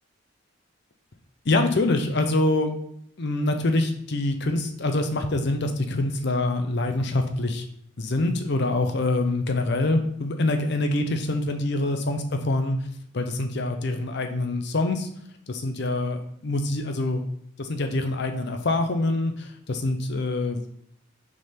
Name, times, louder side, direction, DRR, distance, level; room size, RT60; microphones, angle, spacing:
voice 1, 1.5-2.7 3.2-7.6 8.0-12.8 13.1-15.1 15.5-17.2 17.6-20.6, left 2 dB, 55° left, 6 dB, 0.7 m, -25 dB
6.1 x 3.8 x 4.3 m, 0.69 s
head